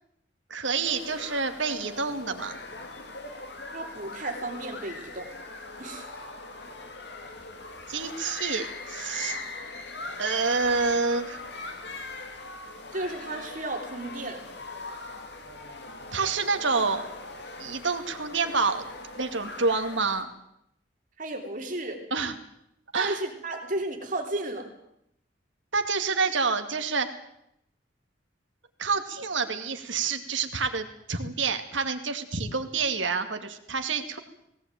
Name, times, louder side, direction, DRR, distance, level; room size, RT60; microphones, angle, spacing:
voice 1, 0.5-2.6 7.9-9.4 10.2-11.4 16.1-17.0 17.6-18.9 19.2-20.3 22.1-22.3 22.9-23.2 25.7-27.1 28.8-34.2, right 4 dB, 80° right, 7 dB, 2.3 m, -28 dB
sound 1, 0.8-20.2, left 3 dB, 60° left, 2.9 m, -40 dB
voice 2, 3.7-5.3 5.8-6.1 12.9-14.4 21.2-22.0 22.9-24.7, right 2 dB, 45° right, 3 dB, 3.5 m, -33 dB
19.5 x 18.0 x 9.2 m, 0.78 s
head